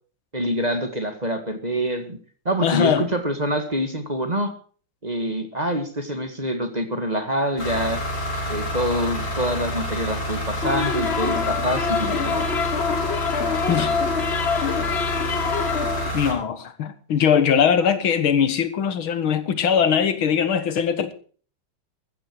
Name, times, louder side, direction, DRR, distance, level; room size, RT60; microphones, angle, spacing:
voice 1, 0.3-2.2 2.5-4.5 5.0-8.0 8.5-12.6, equal, 20° right, 1.8 m, -26 dB
voice 2, 2.6-3.1 13.7-13.9 16.1-21.1, left 7 dB, 85° left, 2.3 m, -21 dB
sound 1, 7.6-16.3, equal, 70° left, 6.1 m, -28 dB
sound 2, 10.6-16.1, left 6 dB, 45° left, 0.9 m, -25 dB
15.0 x 14.0 x 4.7 m
omnidirectional pair, 2.2 m